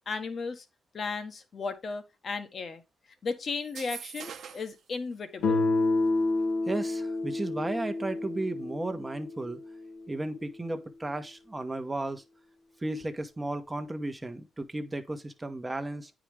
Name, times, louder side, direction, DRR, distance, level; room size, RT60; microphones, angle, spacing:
voice 1, 0.1-0.6 0.9-2.8 3.2-5.6, left 4 dB, 45° left, 1.4 m, -35 dB
sound 1, 3.6-4.8, right 8 dB, 65° right, 1.0 m, -42 dB
Guitar, 5.4-10.2, left 2 dB, 85° left, 1.5 m, -29 dB
voice 2, 6.7-9.6 10.1-12.2 12.8-16.1, right 2 dB, 15° right, 1.2 m, -34 dB
9.1 x 5.0 x 3.3 m
cardioid pair, 90°, 0 cm